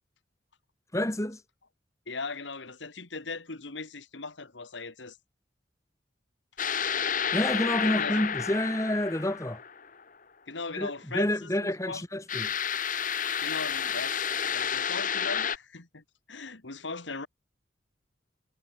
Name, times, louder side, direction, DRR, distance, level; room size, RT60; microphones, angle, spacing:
voice 1, 0.9-1.4 7.3-9.6 10.7-12.5, left 1 dB, 15° left, 1.9 m, -29 dB
voice 2, 2.1-5.2 7.8-8.2 10.5-12.0 13.4-17.3, left 4 dB, 75° left, 2.1 m, -39 dB
sound 1, 6.6-10.0 12.3-15.6, left 8 dB, 45° left, 1.8 m, -30 dB
head